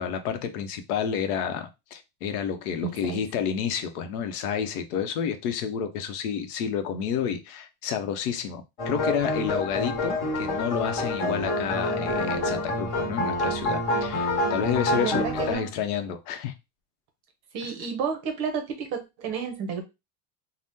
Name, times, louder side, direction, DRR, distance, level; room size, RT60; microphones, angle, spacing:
voice 1, 0.0-16.5 17.6-17.7, left 8 dB, 80° left, 0.7 m, -30 dB
voice 2, 2.8-3.2 15.0-15.7 17.5-19.8, right 6 dB, 35° right, 0.7 m, -31 dB
sound 1, 8.8-15.5, left 1 dB, 40° left, 1.3 m, -27 dB
2.7 x 2.1 x 3.5 m
cardioid pair, 175°, 45 cm